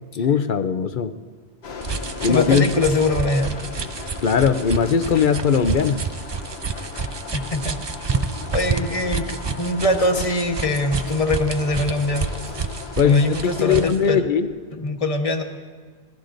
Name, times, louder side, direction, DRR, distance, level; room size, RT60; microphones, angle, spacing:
voice 1, 0.2-1.1 2.2-2.7 4.2-6.0 13.0-14.5, left 6 dB, 55° left, 10 dB, 0.7 m, -19 dB
sound 1, 1.6-13.9, left 4 dB, 70° left, 1.2 m, -36 dB
sound 2, 1.8-14.0, right 5 dB, 40° right, 0.4 m, -29 dB
voice 2, 2.3-3.7 7.3-7.7 8.1-12.3 13.0-14.2 14.7-15.4, left 2 dB, 35° left, 4 dB, 1.3 m, -23 dB
26.0 x 19.0 x 2.6 m, 1.5 s
omnidirectional pair, 1.1 m